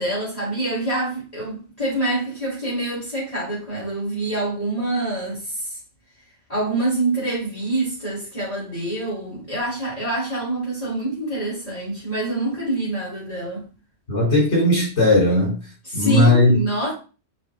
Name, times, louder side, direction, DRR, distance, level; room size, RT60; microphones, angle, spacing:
voice 1, 0.0-5.8 6.5-13.7 15.8-16.9, right 2 dB, 30° left, 3.8 m, -26 dB
voice 2, 14.1-15.6 15.9-16.5, left 1 dB, 70° left, 4.3 m, -17 dB
6.5 x 4.2 x 3.8 m
omnidirectional pair, 1.2 m